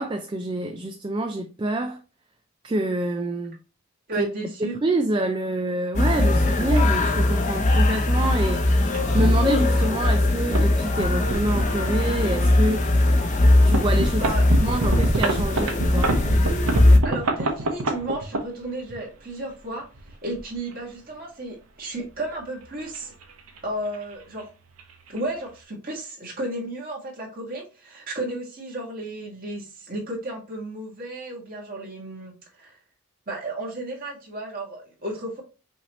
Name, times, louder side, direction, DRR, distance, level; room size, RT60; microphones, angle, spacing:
voice 1, 0.0-2.0 2.6-3.6 4.1-4.3 4.6-13.0 13.6-16.1, right 2 dB, 20° right, 0.3 m, -27 dB
voice 2, 4.1-4.8 14.2-14.4 17.0-19.8 20.2-23.1 23.6-24.5 25.1-32.7 33.3-35.4, right 1 dB, 40° right, 1.9 m, -33 dB
sound 1, 5.9-17.0, left 1 dB, 35° left, 0.6 m, -20 dB
sound 2, 6.7-6.8 7.7-7.9 8.5-8.6 8.9-9.1 9.8-9.9 10.2-10.7 11.0-12.2 12.7-12.8 13.4-19.0 19.8-20.7 22.4-23.6 23.9-24.1 24.4-24.5 24.8-25.2, right 2 dB, 80° right, 0.8 m, -27 dB
5.7 x 2.8 x 3.0 m
head